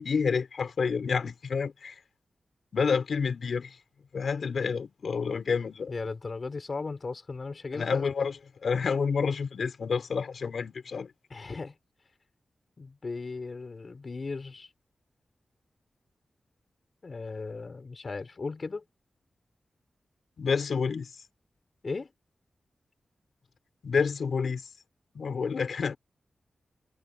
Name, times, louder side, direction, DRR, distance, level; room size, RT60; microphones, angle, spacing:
voice 1, 0.0-2.0 2.7-3.8 4.1-5.9 7.7-11.1 20.4-21.2 23.8-24.7 25.1-26.0, left 5 dB, 65° left, 5.1 m, -29 dB
voice 2, 5.9-8.1 11.3-11.7 12.8-14.7 17.0-18.8 21.8-22.1, left 4 dB, 40° left, 4.3 m, -36 dB
wide cardioid pair, 145°, 0 cm